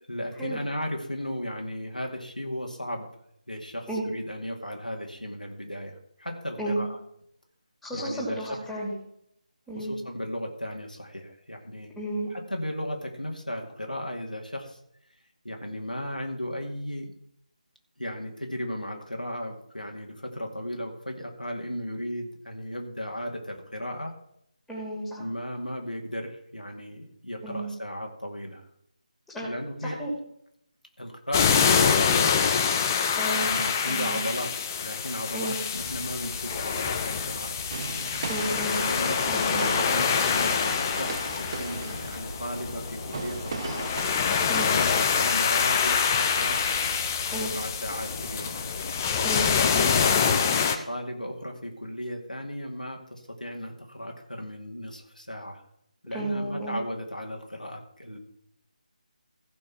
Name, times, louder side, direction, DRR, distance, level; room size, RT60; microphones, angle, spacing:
voice 1, 0.1-3.1 3.5-7.0 7.9-8.4 9.8-11.9 12.3-14.8 15.4-17.1 18.0-24.1 25.2-28.7 29.4-30.0 31.0-32.6 33.4-37.6 38.7-43.8 44.5-46.6 47.2-48.6 49.6-55.6 56.0-58.2, equal, 90° left, 1 dB, 2.4 m, -35 dB
voice 2, 7.8-8.9 9.7-9.9 11.9-12.3 24.7-25.3 27.4-27.7 29.3-29.5 29.8-30.1 33.2-33.5 33.8-34.2 35.3-35.6 38.3-38.8 39.3-39.7 44.5-44.7 47.3-47.5 49.2-49.9 56.1-56.8, right 1 dB, ahead, -5 dB, 2.9 m, -32 dB
sound 1, 31.3-50.8, left 6 dB, 20° left, 0.8 m, -26 dB
sound 2, 35.8-49.7, equal, 60° left, 1.9 m, -41 dB
sound 3, 37.7-44.2, right 5 dB, 35° right, 0.7 m, -38 dB
15.5 x 5.5 x 6.0 m, 0.73 s
figure-of-eight pair, 155°, 4 cm